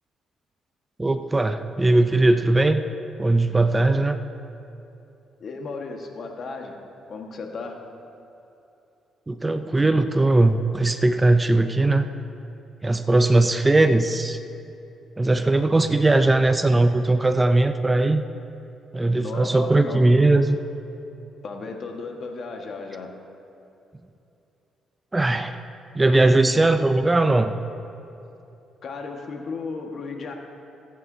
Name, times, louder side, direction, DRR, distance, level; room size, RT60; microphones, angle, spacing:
voice 1, 1.0-2.8 3.2-4.2 9.3-12.1 12.8-14.4 15.2-18.2 18.9-20.6 25.1-25.6 25.9-27.5, right 2 dB, 15° right, 9 dB, 0.5 m, -19 dB
voice 2, 5.4-6.8 7.1-7.8 19.1-20.1 21.4-23.1 28.8-30.3, left 4 dB, 55° left, 2 dB, 1.5 m, -34 dB
23.0 x 9.2 x 2.7 m, 2.9 s
cardioid pair, 90°, 0 cm